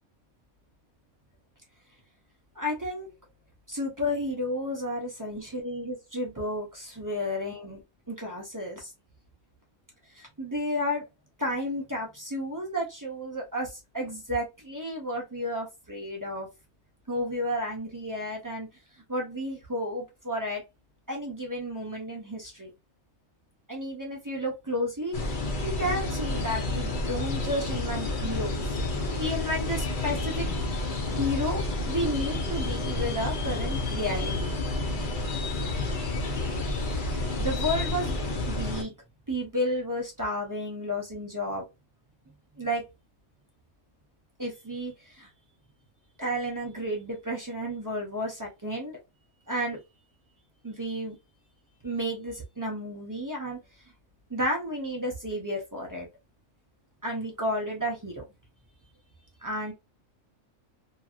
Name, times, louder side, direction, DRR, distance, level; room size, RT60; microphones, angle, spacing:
voice 1, 2.6-3.1 3.7-7.8 8.1-8.9 10.1-11.0 11.4-16.5 17.1-18.7 19.1-20.6 21.1-22.7 23.7-25.2 25.6-28.8 29.1-30.5 31.2-34.5 36.9-38.1 38.5-38.9 39.3-41.7 42.6-42.8 44.4-45.3 46.2-49.0 49.5-49.8 50.6-51.1 51.8-53.6 54.3-56.1 57.0-58.2 59.4-59.7, equal, 30° right, -1 dB, 0.4 m, -32 dB
sound 1, 25.1-38.8, left 2 dB, 50° left, 0.6 m, -30 dB
2.8 x 2.6 x 2.4 m, 0.23 s
omnidirectional pair, 1.5 m